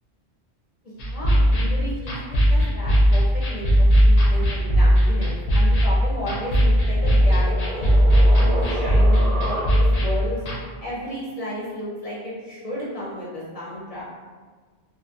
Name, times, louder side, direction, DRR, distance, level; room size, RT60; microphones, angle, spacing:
sound 1, 1.0-10.6, equal, 80° left, 0.9 m, -18 dB
voice 1, 1.0-7.9 8.3-10.4 10.8-14.0, equal, 40° left, -8 dB, 0.6 m, -33 dB
sound 2, 6.6-10.2, right 2 dB, 50° right, 0.4 m, -32 dB
3.0 x 2.1 x 2.3 m, 1.5 s
omnidirectional pair, 1.2 m